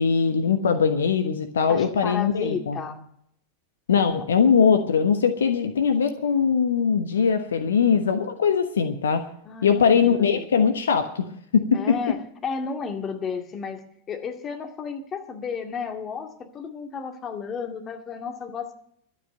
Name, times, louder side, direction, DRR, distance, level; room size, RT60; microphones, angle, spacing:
voice 1, 0.0-2.8 3.9-9.2 9.6-11.8, left 6 dB, 65° left, 8 dB, 1.1 m, -21 dB
voice 2, 1.7-3.0 9.4-10.5 11.7-12.2 12.4-13.8 14.1-18.7, left 5 dB, 25° left, 4 dB, 2.2 m, -33 dB
12.5 x 8.5 x 9.1 m, 0.68 s
figure-of-eight pair, 90°, 0 cm